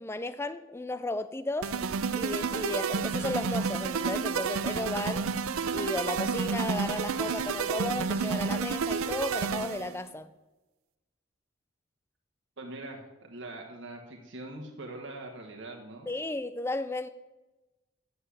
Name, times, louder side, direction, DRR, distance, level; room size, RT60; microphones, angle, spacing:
voice 1, 0.0-1.7 2.1-5.3 5.7-10.3 16.1-17.1, left 2 dB, 10° left, 0.3 m, -34 dB
sound 1, 1.6-10.0, right 5 dB, 70° right, 0.5 m, -30 dB
voice 2, 12.6-16.1, right 2 dB, 55° right, 1.2 m, -42 dB
8.0 x 6.7 x 8.4 m
head